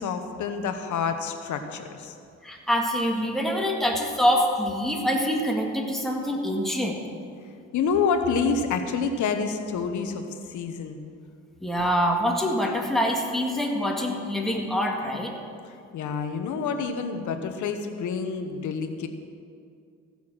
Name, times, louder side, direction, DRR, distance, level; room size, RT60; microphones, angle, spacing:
voice 1, 0.0-2.1 7.7-11.0 15.6-19.1, left 5 dB, 75° left, 7 dB, 1.2 m, -28 dB
voice 2, 2.4-7.0 11.6-15.3, equal, ahead, 0 dB, 1.9 m, -25 dB
15.0 x 7.0 x 6.2 m, 2.4 s
cardioid pair, 90°, 30 cm